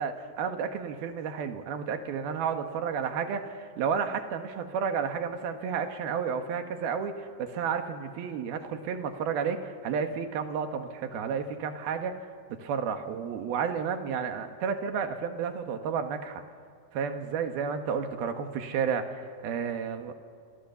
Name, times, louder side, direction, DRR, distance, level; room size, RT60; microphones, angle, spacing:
voice 1, 0.0-12.1 12.5-16.4 16.9-20.1, right 6 dB, 90° right, 6 dB, 3.5 m, -31 dB
29.5 x 26.5 x 7.1 m, 2.1 s
omnidirectional pair, 4.2 m